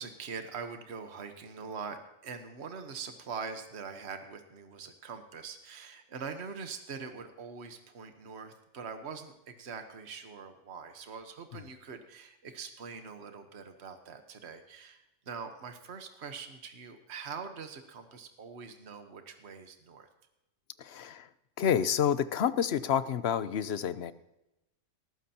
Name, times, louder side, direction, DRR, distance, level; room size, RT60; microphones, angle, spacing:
voice 1, 0.0-20.1, right 5 dB, 60° right, 6 dB, 1.4 m, -43 dB
voice 2, 20.8-21.3 21.6-24.1, left 8 dB, 60° left, 14 dB, 0.9 m, -29 dB
19.0 x 15.0 x 2.9 m, 0.91 s
omnidirectional pair, 1.3 m